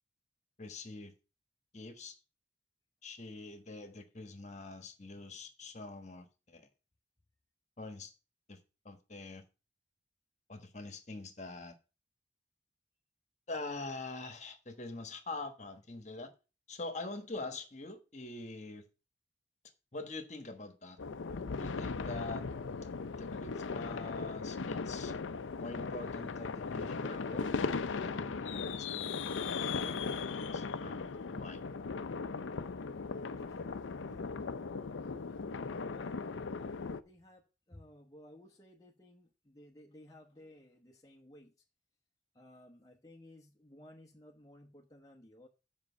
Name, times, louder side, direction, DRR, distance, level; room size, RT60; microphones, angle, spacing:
voice 1, 0.6-1.1 1.7-2.2 3.0-6.7 7.8-8.1 8.5-8.6 8.8-9.4 10.5-11.8 13.5-16.3 16.7-18.8 19.9-21.0 21.6-22.5 23.1-25.1 25.6-30.2 30.5-31.6, left 2 dB, 40° left, 1.3 m, -44 dB
sound 1, 21.0-37.0, left 4 dB, 90° left, 0.5 m, -38 dB
voice 2, 33.3-34.6 35.8-41.5 42.3-45.5, left 1 dB, 20° left, 0.9 m, -57 dB
7.7 x 5.3 x 7.1 m
head